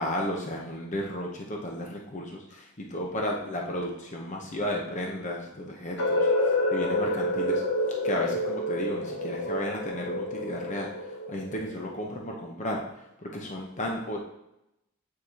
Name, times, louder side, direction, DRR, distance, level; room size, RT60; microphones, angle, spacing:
voice 1, 0.0-7.6 8.0-14.2, left 1 dB, 35° left, 0 dB, 0.8 m, -33 dB
sound 1, 6.0-11.8, left 1 dB, 55° left, 1.5 m, -28 dB
8.7 x 4.7 x 2.9 m, 0.86 s
head